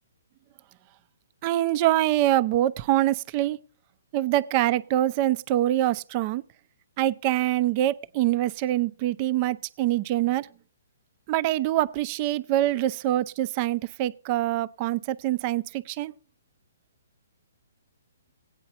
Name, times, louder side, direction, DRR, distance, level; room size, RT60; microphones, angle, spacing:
voice 1, 1.4-3.6 4.1-6.4 7.0-10.5 11.3-15.6 15.9-16.1, right 14 dB, 30° right, 0.5 m, -24 dB
17.0 x 9.0 x 4.3 m
hypercardioid pair, 160°, 0 cm